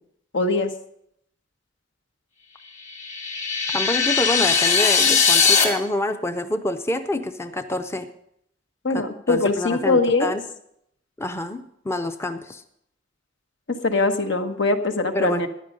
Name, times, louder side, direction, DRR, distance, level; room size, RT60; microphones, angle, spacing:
voice 1, 0.3-0.7 8.8-10.3 13.7-15.5, left 3 dB, 80° left, 6 dB, 1.3 m, -22 dB
sound 1, 2.9-5.6, left 6 dB, 40° left, 2.3 m, -19 dB
voice 2, 3.7-8.1 8.9-10.4 11.2-12.6 15.1-15.4, left 1 dB, 15° left, 8 dB, 0.5 m, -27 dB
14.5 x 10.0 x 5.3 m, 0.74 s
head